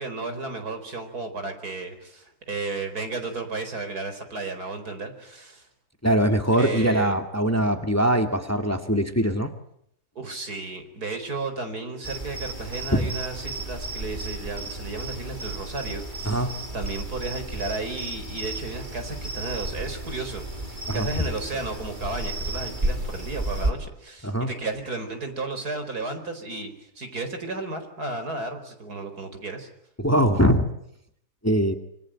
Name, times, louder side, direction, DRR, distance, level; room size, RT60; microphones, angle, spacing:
voice 1, 0.0-5.7 6.5-7.1 10.1-29.7, right 3 dB, 75° right, 7 dB, 5.0 m, -33 dB
voice 2, 6.0-9.5 12.9-13.1 16.2-16.5 20.9-21.1 24.2-24.5 30.0-30.7 31.4-31.7, equal, 10° left, 6 dB, 2.0 m, -22 dB
sound 1, 12.0-23.7, right 2 dB, 30° right, 3.6 m, -33 dB
26.5 x 25.0 x 9.0 m, 0.73 s
omnidirectional pair, 1.6 m